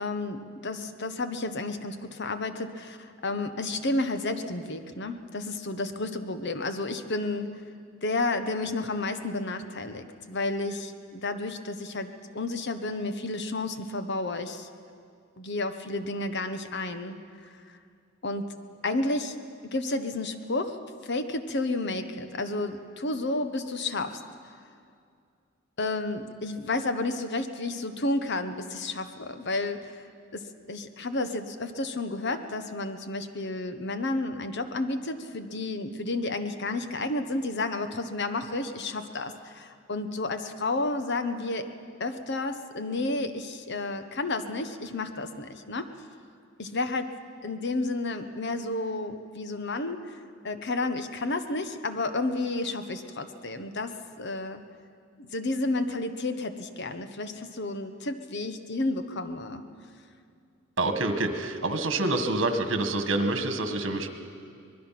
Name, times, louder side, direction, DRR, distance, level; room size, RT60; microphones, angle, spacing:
voice 1, 0.0-7.6 8.0-14.7 15.4-17.2 18.2-18.5 18.8-19.4 19.7-24.2 25.8-30.0 30.3-41.7 42.0-45.9 46.6-47.1 47.4-50.1 50.4-54.6 55.2-59.6, left 2 dB, 60° left, 9 dB, 1.2 m, -31 dB
voice 2, 60.8-64.1, right 2 dB, 70° right, 7 dB, 1.8 m, -27 dB
24.5 x 20.5 x 6.0 m, 2.3 s
head